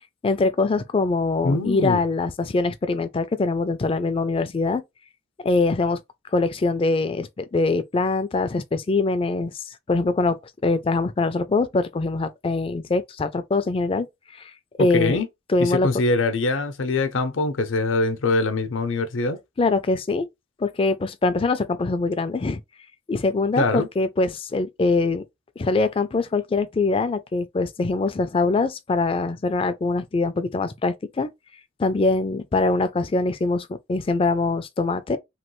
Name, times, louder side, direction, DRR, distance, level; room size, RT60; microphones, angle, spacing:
voice 1, 0.2-4.8 5.4-6.0 6.3-14.1 14.3-14.5 14.8-15.2 15.5-15.9 19.6-20.3 20.6-22.6 23.1-25.2 25.6-31.3 31.8-35.2, left 3 dB, 30° left, 0.3 m, -23 dB
voice 2, 1.4-2.0 14.8-15.3 15.6-19.4 23.6-23.9, left 3 dB, 80° left, 0.6 m, -23 dB
3.1 x 2.2 x 3.0 m
head